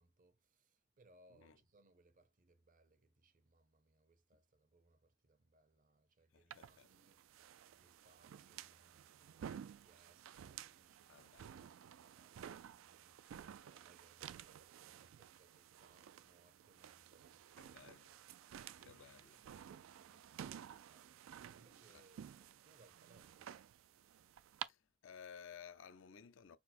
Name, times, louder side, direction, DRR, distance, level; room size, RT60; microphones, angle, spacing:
voice 1, 0.0-18.0 18.8-19.1 19.7-23.7, right 2 dB, 40° right, 0.6 m, -71 dB
voice 2, 6.3-6.9 11.1-11.5 17.6-18.1 18.8-19.4 21.9-22.1 24.6-26.6, left 7 dB, 75° left, 0.5 m, -57 dB
sound 1, 6.5-24.7, right 9 dB, 90° right, 0.3 m, -54 dB
4.4 x 2.0 x 4.1 m
head